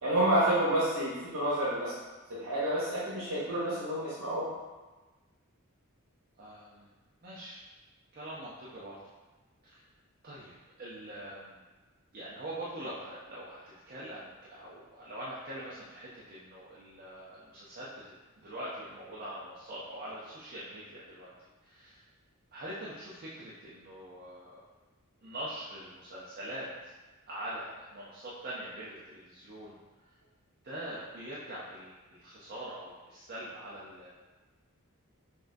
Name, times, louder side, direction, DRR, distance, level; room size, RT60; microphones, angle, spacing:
voice 1, 0.0-1.9 2.3-4.5, right 1 dB, 85° right, -10 dB, 1.0 m, -29 dB
voice 2, 6.4-6.9 7.2-7.6 8.1-9.0 9.6-9.8 10.2-10.5 10.8-11.6 12.1-21.3 21.6-22.0 22.5-24.6 25.2-26.9 27.3-29.8 30.6-34.1, right 1 dB, 45° right, -7 dB, 0.6 m, -43 dB
5.9 x 2.3 x 2.6 m, 1.2 s
head